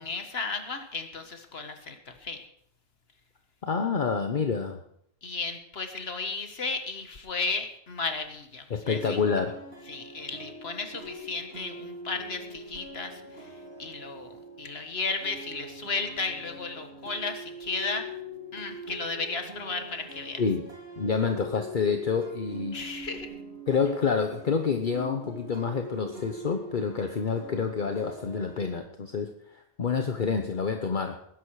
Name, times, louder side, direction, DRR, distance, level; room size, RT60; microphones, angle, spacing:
voice 1, 0.0-2.4 5.2-9.2 9.9-18.1 18.5-20.4 22.7-23.4, left 4 dB, 70° left, 6 dB, 1.8 m, -34 dB
voice 2, 3.6-4.8 8.7-9.6 20.4-20.7 21.0-22.8 23.7-31.2, left 5 dB, 50° left, 6 dB, 1.1 m, -28 dB
sound 1, 8.9-28.7, equal, 80° right, 4.3 m, -43 dB
19.5 x 10.5 x 4.8 m, 0.71 s
omnidirectional pair, 1.1 m